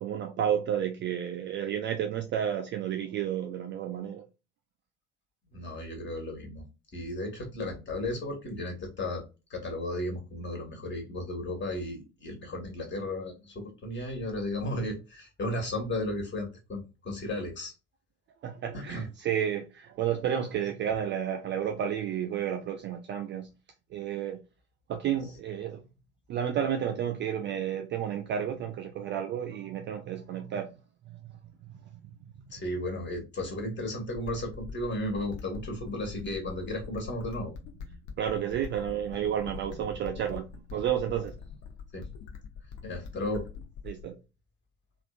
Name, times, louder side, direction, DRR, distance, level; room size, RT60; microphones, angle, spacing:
voice 1, 0.0-4.3 18.4-23.5 23.9-24.4 24.9-25.8 26.3-30.8 31.1-31.2 31.6-31.8 38.2-41.3 43.8-44.2, right 9 dB, 30° right, 0.4 m, -31 dB
voice 2, 5.5-6.6 6.9-9.2 9.5-17.7 18.7-19.1 32.5-37.5 41.9-42.0 42.8-43.4, left 1 dB, 30° left, 1.5 m, -34 dB
sound 1, 34.2-44.2, left 6 dB, 55° left, 0.8 m, -44 dB
3.4 x 2.4 x 2.4 m
figure-of-eight pair, 60°, 39 cm